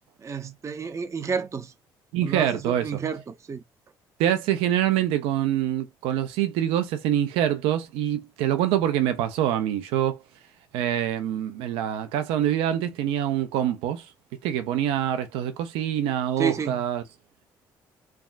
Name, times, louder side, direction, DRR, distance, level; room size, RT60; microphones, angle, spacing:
voice 1, 0.2-1.7 2.2-3.6 16.4-16.8, right 6 dB, 35° right, 0.5 m, -30 dB
voice 2, 2.1-3.0 4.2-10.2 10.7-14.1 14.4-17.0, right 11 dB, 85° right, 0.5 m, -25 dB
3.4 x 2.2 x 2.4 m
supercardioid pair, 70°, 9 cm